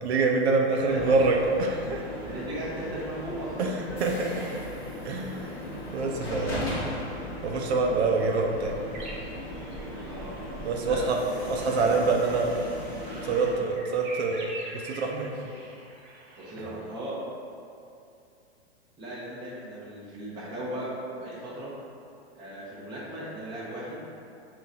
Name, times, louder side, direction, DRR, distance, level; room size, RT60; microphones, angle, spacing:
voice 1, 0.0-2.1 3.6-4.7 5.0-5.5 5.9-6.7 7.4-8.8 10.6-11.2 11.5-12.5 13.2-15.3, right 3 dB, 75° right, 1 dB, 0.6 m, -26 dB
voice 2, 0.7-1.2 2.0-3.7 10.1-10.3 10.8-11.1 11.4-12.1 16.4-17.2 19.0-21.7 22.3-24.0, right 1 dB, 15° right, -8 dB, 0.8 m, -37 dB
sound 1, 0.9-13.5, left 1 dB, 25° left, 1.1 m, -37 dB
sound 2, 8.9-16.7, right 2 dB, 45° right, 0.8 m, -45 dB
3.8 x 2.6 x 4.2 m, 2.6 s
hypercardioid pair, 150°, 33 cm